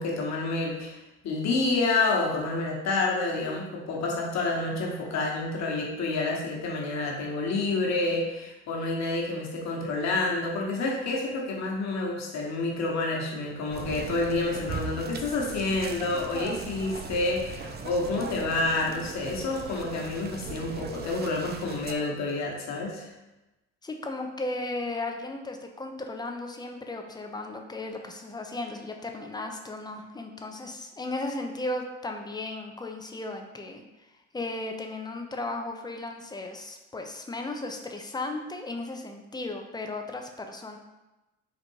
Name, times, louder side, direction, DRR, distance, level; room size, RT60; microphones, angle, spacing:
voice 1, 0.0-23.1, left 3 dB, 60° left, -1 dB, 1.3 m, -29 dB
sound 1, 13.7-21.9, right 5 dB, 30° right, 0.5 m, -39 dB
voice 2, 23.8-33.8 34.3-40.8, left 2 dB, 15° left, 3 dB, 0.6 m, -35 dB
4.3 x 2.5 x 4.6 m, 1.0 s
supercardioid pair, 75°, 31 cm